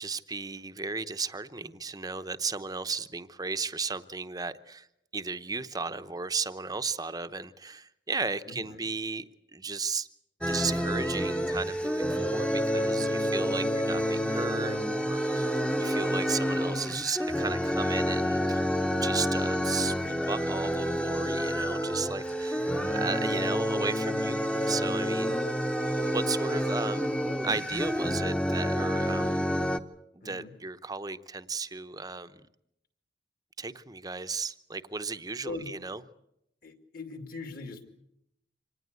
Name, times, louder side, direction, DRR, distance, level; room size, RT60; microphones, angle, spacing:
voice 1, 0.0-4.9 5.1-10.1 10.4-15.5 15.8-18.6 19.0-22.6 22.9-25.3 26.0-27.1 27.4-29.5 30.1-32.5 33.6-36.0, right 4 dB, 20° right, 0.8 m, -35 dB
voice 2, 8.5-8.9 13.6-14.0 22.5-23.1 30.2-30.5 35.4-35.7 36.6-37.9, left 3 dB, 55° left, 2.6 m, -42 dB
sound 1, 10.4-29.8, equal, 5° left, 1.0 m, -29 dB
25.5 x 19.0 x 8.2 m
head